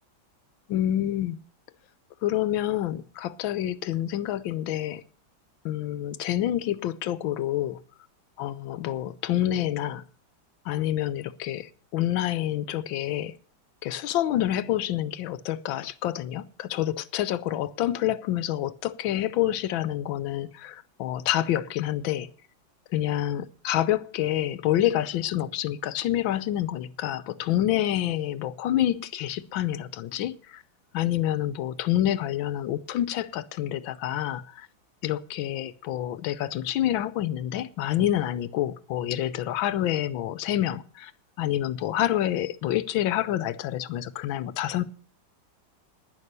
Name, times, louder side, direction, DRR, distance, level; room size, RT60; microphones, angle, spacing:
voice 1, 0.7-1.4 2.2-5.0 5.6-7.8 8.4-10.0 10.6-13.3 13.8-22.3 22.9-30.6 30.9-34.7 35.0-41.1 41.4-44.8, left 12 dB, 80° left, 1.5 m, -27 dB
11.0 x 10.5 x 6.8 m
omnidirectional pair, 2.1 m